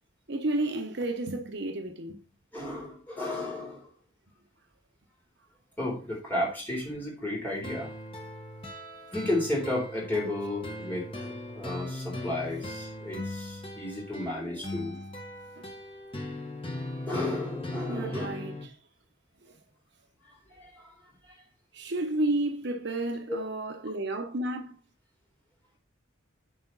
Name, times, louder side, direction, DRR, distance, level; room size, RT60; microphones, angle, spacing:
voice 1, 0.3-2.2 15.6-15.7 17.9-18.7 19.4-19.5 21.7-24.8, right 2 dB, 55° right, 0.9 m, -31 dB
voice 2, 2.5-3.9 5.8-7.9 9.1-15.0 17.1-18.3 20.5-20.9 23.3-23.4, left 1 dB, 10° left, 3.6 m, -33 dB
sound 1, 7.6-18.6, left 1 dB, 25° left, 1.3 m, -38 dB
10.5 x 4.9 x 4.0 m
head